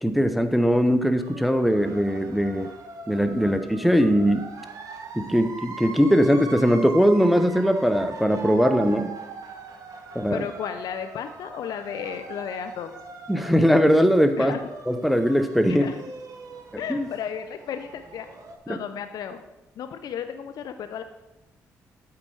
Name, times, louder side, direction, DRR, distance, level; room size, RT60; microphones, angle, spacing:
voice 1, 0.0-2.7 3.1-4.5 5.2-9.1 10.1-10.5 13.3-14.5 14.9-15.9 16.9-17.1 18.7-18.8, equal, ahead, 9 dB, 0.7 m, -20 dB
sound 1, 1.2-18.6, right 4 dB, 60° right, 1.2 m, -41 dB
voice 2, 10.3-12.9 14.4-14.6 15.7-16.0 16.8-18.3 18.7-19.4 19.8-21.0, left 8 dB, 70° left, 9 dB, 0.5 m, -33 dB
8.4 x 4.4 x 6.2 m, 0.98 s
supercardioid pair, 55°, 7 cm